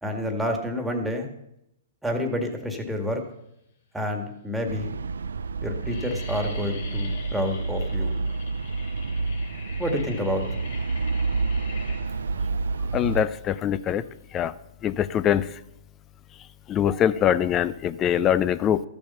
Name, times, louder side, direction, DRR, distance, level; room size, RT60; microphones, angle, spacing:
voice 1, 0.0-1.3 2.0-3.2 3.9-5.0 5.6-8.1 9.8-10.4, left 1 dB, 5° right, 3 dB, 1.9 m, -28 dB
sound 1, 3.2-3.8 4.5-4.6 4.8-5.2 5.5-14.4, left 4 dB, 60° left, 3.1 m, -43 dB
sound 2, 4.7-13.3, right 3 dB, 80° right, 0.4 m, -29 dB
voice 2, 12.9-14.0 14.3-14.5 14.8-15.5 16.7-18.8, left 10 dB, 25° left, 15 dB, 0.6 m, -23 dB
14.0 x 7.1 x 5.6 m, 0.82 s
hypercardioid pair, 120°, 0 cm